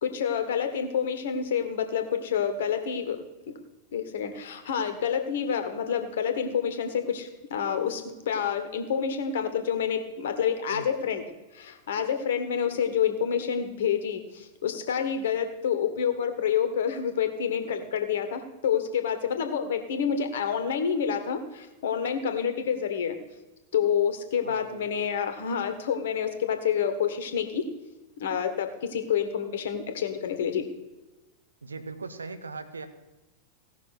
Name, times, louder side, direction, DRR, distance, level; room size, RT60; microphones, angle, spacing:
voice 1, 0.0-3.2 3.9-11.2 11.5-23.2 23.7-27.6 28.2-30.7, left 7 dB, 60° left, 7 dB, 1.4 m, -28 dB
voice 2, 10.7-11.1 24.4-24.9 31.6-32.9, right 3 dB, 75° right, 9 dB, 1.0 m, -40 dB
16.5 x 5.9 x 5.9 m, 1.1 s
figure-of-eight pair, 90°, 0 cm